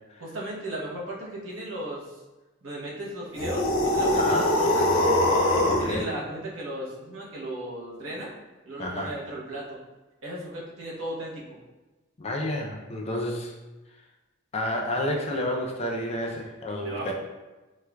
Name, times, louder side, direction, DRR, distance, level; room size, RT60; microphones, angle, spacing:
voice 1, 0.2-2.1 2.6-5.0 5.6-8.3 8.7-9.8 10.2-11.6 16.8-17.1, right 1 dB, 85° right, -4 dB, 0.8 m, -36 dB
sound 1, 3.3-6.0, left 1 dB, 85° left, 0.6 m, -22 dB
voice 2, 4.2-4.5 5.6-6.1 8.8-9.1 12.2-13.5 14.5-17.1, left 1 dB, 30° left, 1 dB, 0.4 m, -30 dB
4.3 x 2.3 x 2.2 m, 1.1 s
head